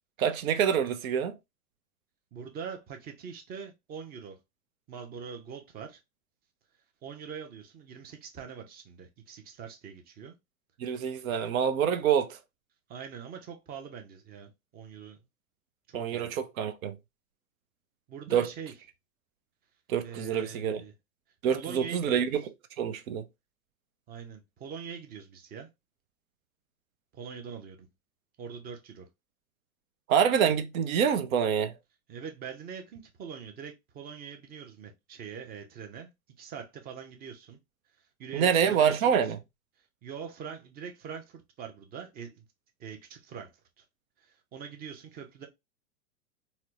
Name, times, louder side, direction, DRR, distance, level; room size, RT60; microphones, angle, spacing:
voice 1, 0.2-1.4 10.8-12.4 15.9-17.0 18.3-18.5 19.9-20.8 21.4-22.4 22.8-23.2 30.1-31.7 38.3-39.4, right 8 dB, 65° right, 0.7 m, -26 dB
voice 2, 2.3-4.4 4.9-6.0 7.0-10.3 11.3-11.4 12.9-15.2 15.9-16.4 18.1-18.7 20.0-20.9 21.5-22.2 24.1-25.7 27.1-27.9 28.4-29.1 32.1-36.1 36.4-37.6 38.2-39.3 40.0-42.4 42.8-43.5 43.8-43.9 44.2-45.5, right 7 dB, 20° right, 0.6 m, -43 dB
4.2 x 2.1 x 2.5 m
hypercardioid pair, 120°, 45 cm